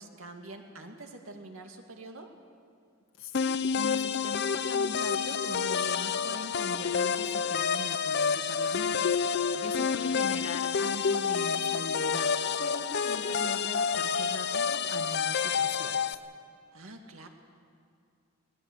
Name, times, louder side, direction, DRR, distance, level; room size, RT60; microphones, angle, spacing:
voice 1, 0.0-2.3 9.4-10.2 16.7-17.3, right 2 dB, 75° right, 3 dB, 2.3 m, -46 dB
voice 2, 3.2-16.2, left 2 dB, 75° left, 3 dB, 1.8 m, -41 dB
sound 1, 3.3-16.1, left 6 dB, 55° left, 0.7 m, -29 dB
20.5 x 19.0 x 8.1 m, 2.4 s
head